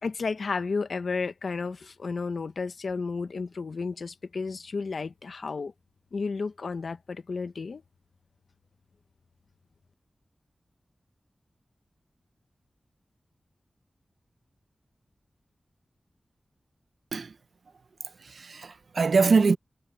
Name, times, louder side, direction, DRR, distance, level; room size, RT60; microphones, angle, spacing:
voice 1, 0.0-5.7 6.1-7.8, left 4 dB, 75° left, 1.1 m, -32 dB
voice 2, 18.2-19.6, right 4 dB, 75° right, 0.9 m, -23 dB
wide cardioid pair, 70°, 0 cm